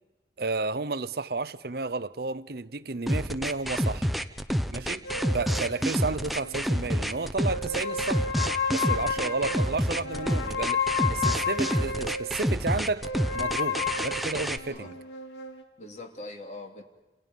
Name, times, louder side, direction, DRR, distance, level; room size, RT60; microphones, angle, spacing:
voice 1, 0.4-4.1 4.7-5.1 5.3-8.3 8.7-15.0, right 3 dB, 60° right, 0.8 m, -32 dB
sound 1, 3.1-14.6, equal, ahead, 0.9 m, -28 dB
sound 2, 5.0-7.1 7.5-12.3 13.0-15.6, left 4 dB, 75° left, 3.0 m, -32 dB
voice 2, 5.0-5.5 9.2-9.6 14.7-15.0 15.8-16.8, left 2 dB, 40° left, 3.0 m, -43 dB
29.5 x 29.0 x 5.4 m
head